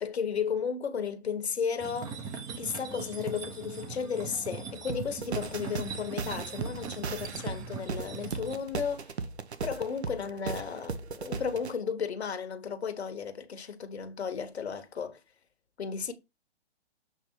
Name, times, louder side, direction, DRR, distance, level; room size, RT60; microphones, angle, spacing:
voice 1, 0.0-9.1 9.6-15.2 15.8-16.1, left 6 dB, 75° left, 1.3 m, -34 dB
sound 1, 1.8-8.6, right 5 dB, 10° right, 0.5 m, -41 dB
sound 2, 4.9-11.7, right 5 dB, 75° right, 1.0 m, -37 dB
7.1 x 3.5 x 4.4 m
figure-of-eight pair, 130°, 33 cm